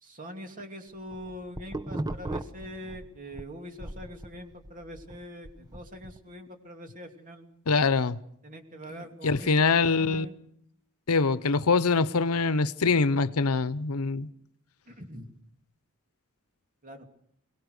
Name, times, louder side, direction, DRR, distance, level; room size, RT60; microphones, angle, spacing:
voice 1, 0.0-7.5 8.4-10.3 14.9-15.3 16.8-17.0, equal, 35° right, 2.7 m, -43 dB
sound 1, 0.9-3.5 3.8-6.2, right 1 dB, 20° right, 0.8 m, -37 dB
voice 2, 7.7-8.2 8.9-10.3 11.1-14.3, left 4 dB, 80° left, 0.8 m, -24 dB
23.0 x 18.5 x 6.6 m
head